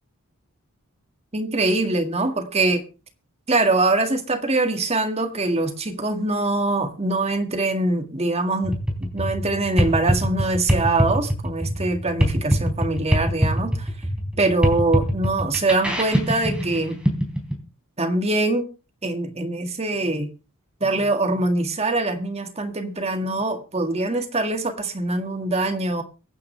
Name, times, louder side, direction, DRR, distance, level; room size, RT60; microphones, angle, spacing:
voice 1, 1.3-2.8 3.5-8.7 9.0-13.9 14.4-17.0 18.0-18.7 19.0-20.3 20.8-26.0, right 2 dB, 30° right, 6 dB, 1.8 m, -23 dB
sound 1, 8.6-17.5, equal, 5° right, 3.8 m, -23 dB
23.5 x 9.8 x 3.3 m, 0.33 s
head